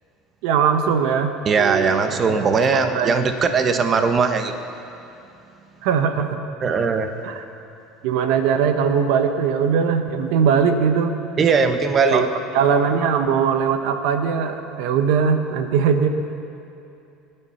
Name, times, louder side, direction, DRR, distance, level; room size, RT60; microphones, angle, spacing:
voice 1, 0.4-2.2 2.7-3.3 5.8-6.4 7.2-7.4 8.0-11.1 12.1-12.3 12.5-16.1, right 6 dB, 75° right, 7 dB, 1.0 m, -20 dB
voice 2, 1.5-4.5 6.6-7.1 11.4-12.2, right 5 dB, 35° right, 7 dB, 1.1 m, -19 dB
23.5 x 10.0 x 5.8 m, 2.7 s
supercardioid pair, 125°, 0 cm